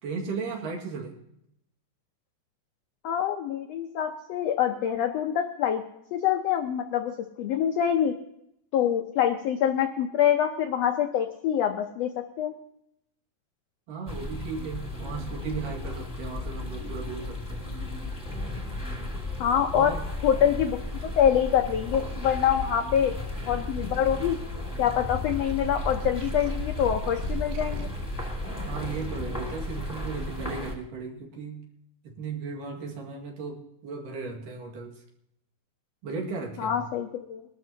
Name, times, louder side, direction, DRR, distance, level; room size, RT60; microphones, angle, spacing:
voice 1, 0.0-1.1 13.9-17.7 19.7-20.1 28.7-31.7 32.0-35.0 36.0-36.9, right 5 dB, 85° right, 0 dB, 3.5 m, -36 dB
voice 2, 3.0-5.8 6.1-8.1 8.7-12.1 12.4-12.5 19.4-19.9 20.2-23.1 23.5-24.4 24.8-27.9 36.6-37.4, left 9 dB, 90° left, 5 dB, 1.4 m, -25 dB
sound 1, 14.1-30.7, left 2 dB, 10° left, 1.0 m, -35 dB
sound 2, 25.2-30.5, right 2 dB, 70° right, 2.2 m, -38 dB
22.0 x 12.5 x 2.8 m, 0.79 s
omnidirectional pair, 3.8 m